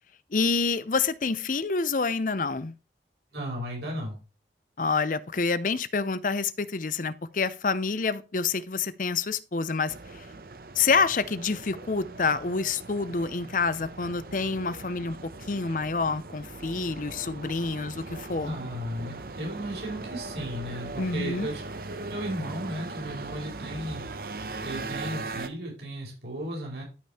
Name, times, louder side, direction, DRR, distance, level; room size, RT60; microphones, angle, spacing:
voice 1, 0.3-2.7 4.8-9.9 10.7-15.2 15.5-18.6 21.0-21.5, left 4 dB, 50° left, 0.6 m, -27 dB
voice 2, 3.3-4.2 18.4-21.6 21.9-24.0 24.3-26.8, equal, 70° right, 4.6 m, -35 dB
sound 1, 9.9-25.5, right 3 dB, 55° right, 0.9 m, -40 dB
12.5 x 5.3 x 4.3 m
head